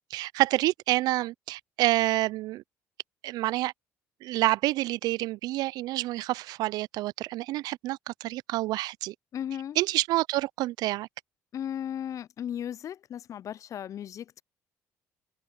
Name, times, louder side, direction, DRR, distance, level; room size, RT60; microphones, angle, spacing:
voice 1, 0.1-2.6 3.2-3.7 4.2-9.1 9.8-11.1, right 17 dB, 70° right, 0.4 m, -28 dB
voice 2, 9.3-9.8 11.5-14.4, left 9 dB, 50° left, 0.4 m, -36 dB
hypercardioid pair, 65°, 7 cm